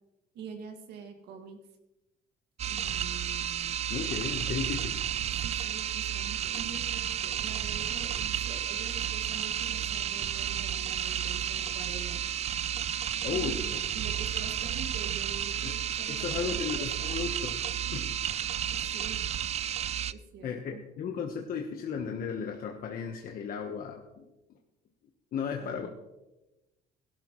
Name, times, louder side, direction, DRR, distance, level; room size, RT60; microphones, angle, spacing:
voice 1, 0.3-1.6 2.7-3.8 5.4-12.3 13.3-17.3 17.8-18.1 18.7-19.2 20.1-20.8 25.6-25.9, right 5 dB, 80° right, 4 dB, 2.1 m, -46 dB
sound 1, 2.6-20.1, right 10 dB, 40° right, 0.4 m, -32 dB
voice 2, 3.9-5.0 13.2-13.8 15.6-15.8 16.1-17.6 17.9-18.0 20.4-24.2 25.3-25.9, left 6 dB, 60° left, 2 dB, 1.2 m, -35 dB
16.5 x 12.0 x 3.2 m, 1.0 s
cardioid pair, 110°, 17 cm